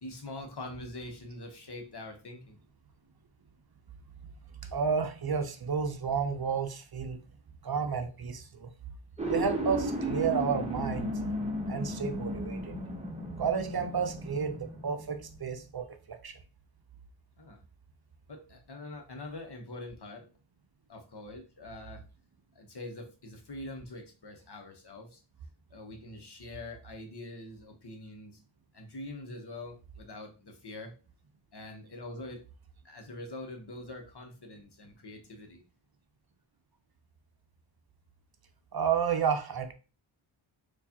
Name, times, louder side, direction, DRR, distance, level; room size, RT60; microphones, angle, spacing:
voice 1, 0.0-2.6 17.4-17.6 18.3-20.3 20.9-22.0 22.5-25.2 25.7-28.4 28.7-30.9 31.5-32.4 32.8-35.6, left 2 dB, 55° left, 0.9 m, -44 dB
voice 2, 4.5-7.2 7.6-8.7 9.3-11.2 11.7-12.8 13.4-16.4 38.7-39.7, right 6 dB, 50° right, 0.6 m, -31 dB
sound 1, 9.2-15.4, equal, 15° right, 0.8 m, -35 dB
4.5 x 2.4 x 2.8 m
wide cardioid pair, 85°, 48 cm